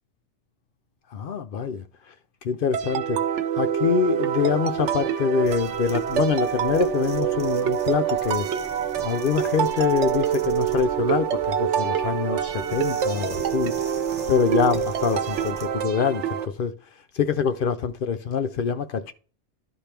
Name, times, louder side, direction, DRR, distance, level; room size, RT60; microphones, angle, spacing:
voice 1, 1.1-1.8 2.4-3.2 3.6-8.5 9.0-13.7 14.3-16.2 16.6-16.7 17.1-19.1, left 6 dB, 60° left, 0.7 m, -25 dB
sound 1, 2.7-16.5, right 9 dB, 85° right, 1.0 m, -26 dB
sound 2, 5.4-15.7, right 4 dB, 40° right, 1.1 m, -43 dB
12.0 x 4.4 x 3.4 m
omnidirectional pair, 1.2 m